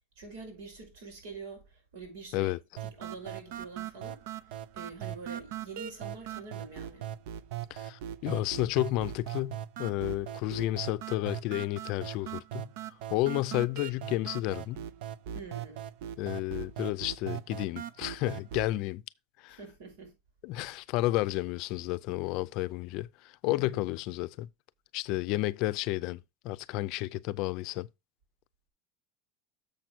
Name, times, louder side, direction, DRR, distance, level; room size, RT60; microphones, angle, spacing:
voice 1, 0.2-2.5 2.8-4.2 4.7-7.1 15.3-15.8 19.5-20.1 23.5-23.8, right 4 dB, 90° right, 5.7 m, -45 dB
sound 1, 2.8-18.8, right 10 dB, 70° right, 0.6 m, -40 dB
voice 2, 7.7-12.7 13.1-14.8 16.2-19.0 19.4-19.6 20.4-24.5 24.9-27.9, left 17 dB, 50° left, 0.5 m, -31 dB
7.0 x 6.0 x 4.4 m
supercardioid pair, 155°, 0 cm